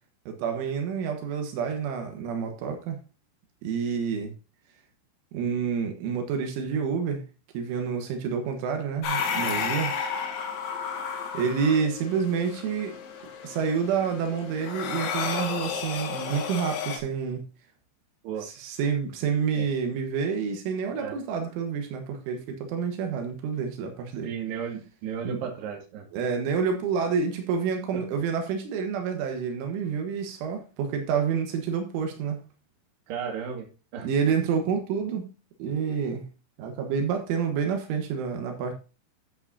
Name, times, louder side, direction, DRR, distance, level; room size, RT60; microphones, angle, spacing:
voice 1, 0.3-3.0 3.6-4.3 5.3-7.2 7.5-9.9 11.3-13.0 13.4-17.4 18.4-24.3 25.3-25.4 26.1-32.4 34.0-35.3 35.6-36.3 36.6-38.7, right 6 dB, 85° right, 3.7 m, -28 dB
sound 1, 9.0-17.0, left 6 dB, 75° left, 4.1 m, -32 dB
voice 2, 24.2-26.1 27.9-28.0 33.1-33.7 33.9-34.1, right 7 dB, 65° right, 3.8 m, -34 dB
10.5 x 8.5 x 2.7 m
omnidirectional pair, 5.4 m